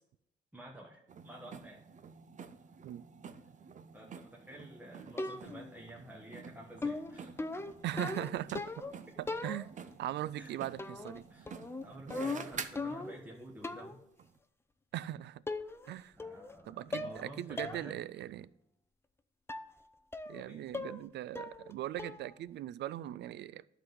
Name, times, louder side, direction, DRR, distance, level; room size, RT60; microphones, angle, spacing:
voice 1, 0.5-1.8 3.9-7.4 10.4-10.6 11.3-11.5 11.8-14.0 16.2-18.0 20.4-20.6, right 1 dB, 10° right, 1.3 m, -50 dB
sound 1, 1.1-13.3 14.2-14.3, right 6 dB, 45° right, 0.7 m, -49 dB
sound 2, 5.2-5.7 6.8-9.0 9.3-9.9 10.8-11.2 11.5-13.3 13.6-14.0 14.9-15.0 15.5-15.9 16.2-16.6 16.9-17.2 17.6-17.8 18.2-18.3 19.5-19.7 20.1-20.4 20.7-21.1 21.3-21.7 22.0-22.3, left 3 dB, 15° left, 0.5 m, -39 dB
voice 2, 7.8-8.8 9.2-9.7 10.0-11.3 14.9-15.4 15.9-16.1 16.7-18.5 20.3-23.7, right 13 dB, 75° right, 0.4 m, -39 dB
11.5 x 4.1 x 7.8 m
cardioid pair, 110°, 18 cm